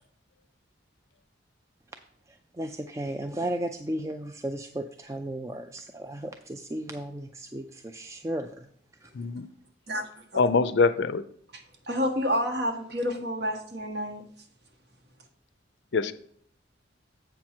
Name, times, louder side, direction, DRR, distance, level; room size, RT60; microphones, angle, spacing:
voice 1, 2.3-8.7 9.0-9.1, right 1 dB, 15° right, 6 dB, 0.3 m, -35 dB
voice 2, 9.1-9.5 10.3-11.2 15.9-16.1, left 4 dB, 60° left, 13 dB, 0.5 m, -23 dB
voice 3, 11.9-14.2, equal, 55° right, 3 dB, 1.4 m, -29 dB
7.9 x 5.9 x 4.4 m, 0.63 s
head